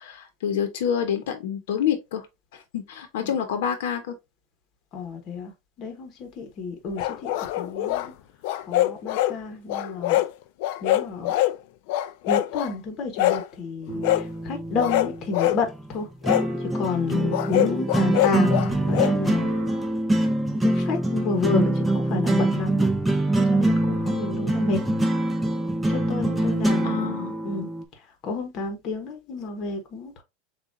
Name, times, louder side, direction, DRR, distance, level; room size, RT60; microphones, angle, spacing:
voice 1, 0.0-2.3 2.5-4.1 26.8-27.4, left 8 dB, 75° left, 0.9 m, -27 dB
voice 2, 4.9-5.5 5.8-7.3 7.6-8.1 8.7-10.2 10.8-11.4 12.2-16.1 16.6-19.5 19.8-19.9 20.6-22.9 23.4-24.8 25.9-27.7 28.2-30.2, left 4 dB, 35° left, 1.0 m, -30 dB
sound 1, 7.0-8.1 8.4-9.4 9.7-10.3 10.6-11.6 11.9-12.7 13.2-13.5 14.0-14.3 14.8-15.6 16.2-16.5 17.3-19.2, left 14 dB, 60° left, 0.4 m, -24 dB
sound 2, 13.9-27.8, right 1 dB, 5° right, 0.5 m, -24 dB
6.8 x 2.4 x 2.6 m
supercardioid pair, 160°, 0 cm